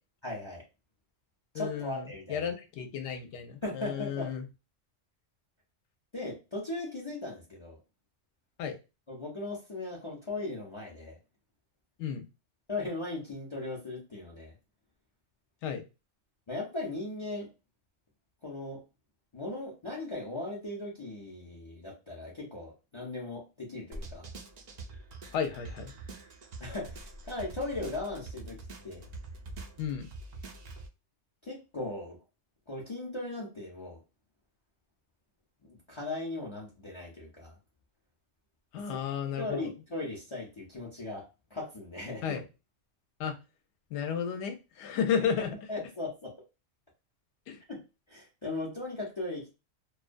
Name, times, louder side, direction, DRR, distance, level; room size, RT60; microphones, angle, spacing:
voice 1, 0.2-0.6 1.5-2.4 3.6-4.3 6.1-7.8 9.1-11.2 12.7-14.5 16.5-17.5 18.4-18.8 19.3-24.3 26.6-29.1 31.4-32.2 32.7-34.0 35.7-37.5 38.9-39.0 39.4-42.4 45.4-46.3 47.7-47.8 48.1-49.5, left 2 dB, 40° left, -3 dB, 0.4 m, -38 dB
voice 2, 1.5-2.0 2.3-4.4 8.6-8.8 12.0-12.3 15.6-15.8 25.3-25.9 29.8-30.1 38.7-39.6 42.2-42.4 43.2-43.3 43.9-45.6 47.5-47.6, left 7 dB, 70° left, 5 dB, 0.8 m, -33 dB
sound 1, 23.9-30.9, right 2 dB, 65° right, 0.4 m, -45 dB
2.3 x 2.2 x 2.5 m, 0.28 s
omnidirectional pair, 1.3 m